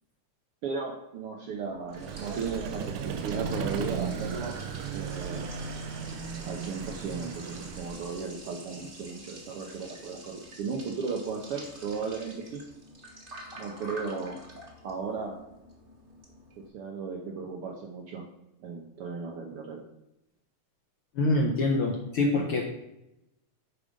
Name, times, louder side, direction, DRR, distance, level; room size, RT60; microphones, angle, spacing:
voice 1, 0.6-4.6 4.9-5.5 6.5-12.6 13.6-14.4 14.8-15.4 16.7-18.2 18.6-19.8, right 5 dB, 70° right, 1 dB, 1.4 m, -35 dB
Liquid, 1.5-16.7, right 1 dB, 35° right, 0.9 m, -48 dB
Vehicle, 1.9-8.3, right 6 dB, 90° right, 2.2 m, -36 dB
voice 2, 21.2-22.6, left 2 dB, 70° left, 1 dB, 1.3 m, -25 dB
8.9 x 4.9 x 5.2 m, 0.87 s
omnidirectional pair, 3.4 m